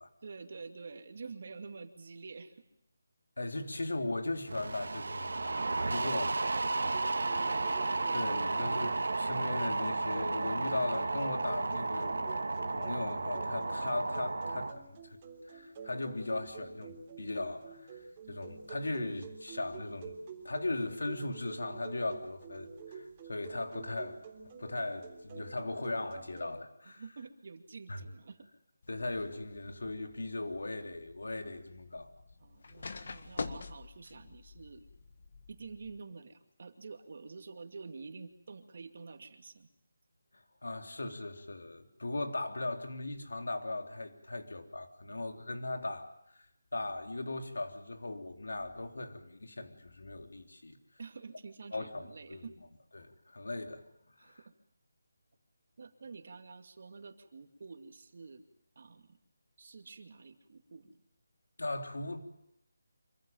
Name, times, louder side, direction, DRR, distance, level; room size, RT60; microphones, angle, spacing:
voice 1, 0.2-2.6 26.8-28.4 32.4-34.9 35.5-39.7 45.1-45.2 51.0-52.6 54.2-54.5 55.8-58.4 58.8-59.2 59.6-61.0, right 4 dB, 50° right, 7 dB, 2.4 m, -48 dB
voice 2, 3.4-6.5 8.1-12.4 12.7-20.2 20.4-24.2 24.4-27.0 27.9-28.0 28.9-32.1 40.3-46.4 46.7-50.8 51.7-52.5 52.9-53.8 54.2-54.4 61.6-62.2, left 2 dB, 85° left, 5 dB, 3.5 m, -38 dB
sound 1, 4.5-14.7, right 3 dB, 75° right, 1.6 m, -33 dB
sound 2, 6.9-26.5, right 5 dB, 25° right, 3.7 m, -49 dB
sound 3, 28.8-36.0, left 4 dB, 55° left, 1.8 m, -47 dB
26.5 x 15.0 x 9.2 m, 0.80 s
figure-of-eight pair, 170°, 0 cm